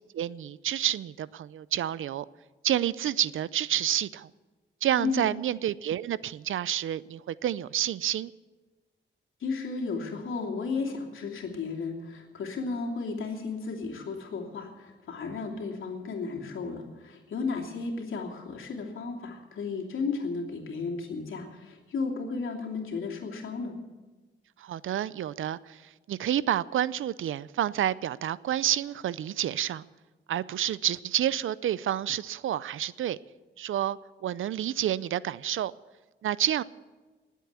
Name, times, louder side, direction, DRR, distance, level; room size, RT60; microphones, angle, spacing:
voice 1, 0.1-2.3 2.6-4.3 4.8-8.3 17.5-17.6 24.6-25.8 26.1-29.9 30.3-33.2 33.6-35.7 36.2-36.6, right 11 dB, 85° right, 0.5 m, -29 dB
voice 2, 5.0-5.3 9.4-23.7, left 4 dB, 85° left, 2.9 m, -34 dB
19.5 x 8.3 x 8.2 m
wide cardioid pair, 120°, 20 cm